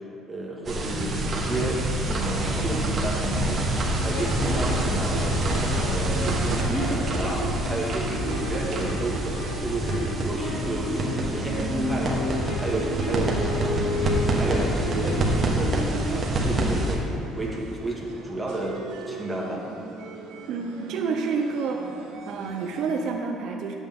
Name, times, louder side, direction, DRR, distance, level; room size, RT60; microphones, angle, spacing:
voice 1, 0.3-1.8 2.1-3.6 4.0-5.2 5.8-12.2 12.6-13.5 14.3-17.1 17.3-18.8 19.1-19.6, right 2 dB, 10° right, -4 dB, 1.6 m, -31 dB
sound 1, 0.7-17.0, right 1 dB, 30° right, 1.3 m, -27 dB
sound 2, 3.8-15.2, left 2 dB, 80° left, 2.0 m, -33 dB
sound 3, 4.5-23.1, right 4 dB, 90° right, 0.9 m, -38 dB
voice 2, 20.5-21.9 22.3-23.7, right 5 dB, 65° right, 3 dB, 0.6 m, -28 dB
10.5 x 8.0 x 3.6 m, 2.6 s
cardioid pair, 135°, 0 cm